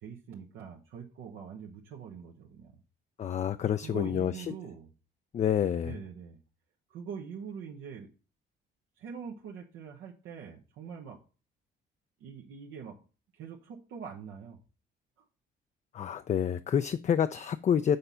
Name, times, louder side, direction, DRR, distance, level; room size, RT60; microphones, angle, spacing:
voice 1, 0.0-2.7 3.8-4.9 5.8-6.4 6.9-8.1 9.0-11.2 12.2-13.0 13.3-14.6, right 7 dB, 90° right, 1.0 m, -43 dB
voice 2, 3.2-4.5 5.3-5.9 15.9-18.0, left 8 dB, 35° left, 0.4 m, -28 dB
6.7 x 4.0 x 5.6 m
cardioid pair, 90°, 20 cm